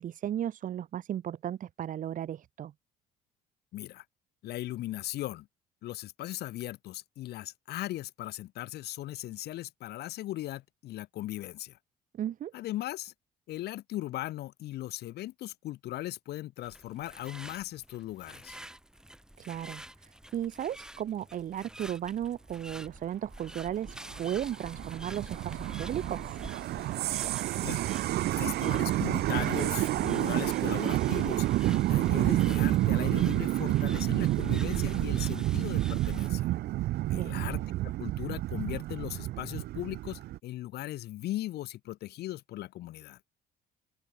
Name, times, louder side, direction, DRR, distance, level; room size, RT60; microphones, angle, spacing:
voice 1, 0.0-2.7 12.1-12.5 19.4-26.3 37.1-37.3, right 10 dB, 50° right, 1.2 m, -35 dB
voice 2, 3.7-4.0 4.4-5.5 5.8-11.8 12.5-13.1 13.5-18.6 27.2-27.8 28.4-36.5 37.1-43.2, left 15 dB, 75° left, 2.9 m, -38 dB
sound 1, 16.6-36.3, right 1 dB, 5° right, 1.8 m, -47 dB
sound 2, 23.9-40.4, right 15 dB, 70° right, 1.2 m, -29 dB
open air
cardioid pair, 110°, 17 cm